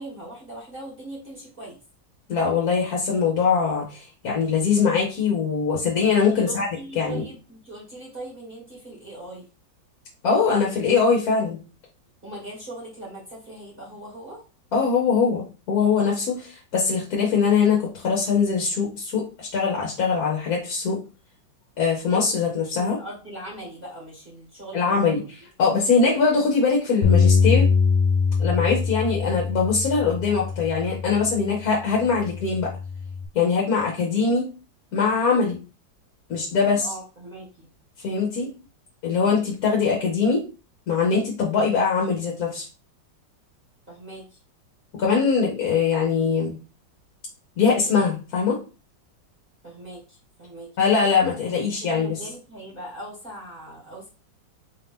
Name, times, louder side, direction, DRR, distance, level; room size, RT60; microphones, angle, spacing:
voice 1, 0.0-1.8 6.3-9.5 12.2-14.4 22.8-25.1 25.6-25.8 36.8-37.7 43.9-44.4 49.6-50.7 51.6-54.1, right 1 dB, 30° right, -5 dB, 1.5 m, -40 dB
voice 2, 2.3-6.7 6.9-7.2 10.2-11.6 14.7-21.0 21.8-23.0 24.7-25.2 25.6-27.7 28.4-32.7 33.3-34.5 34.9-35.6 36.3-36.9 38.0-38.5 39.0-40.4 40.9-42.6 44.9-46.6 47.6-48.6 50.8-52.2, left 5 dB, 60° left, -1 dB, 1.3 m, -22 dB
Bass guitar, 27.0-31.5 32.1-33.3, left 5 dB, 75° left, 1.3 m, -23 dB
4.1 x 2.7 x 3.5 m, 0.33 s
omnidirectional pair, 2.0 m